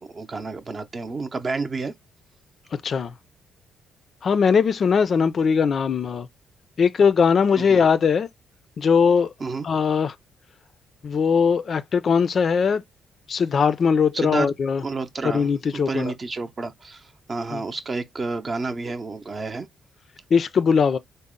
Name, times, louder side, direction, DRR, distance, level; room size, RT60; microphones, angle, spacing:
voice 1, 0.0-1.9 7.6-7.9 9.4-9.7 14.1-14.5 14.8-19.7, right 3 dB, 35° right, 0.6 m, -30 dB
voice 2, 2.7-3.1 4.2-6.3 6.8-8.3 8.8-9.3 9.6-10.1 11.0-12.8 13.3-14.8 15.2-16.1 17.5-17.6 20.3-21.0, left 6 dB, 50° left, 0.4 m, -20 dB
4.0 x 2.0 x 3.7 m
cardioid pair, 90°, 0 cm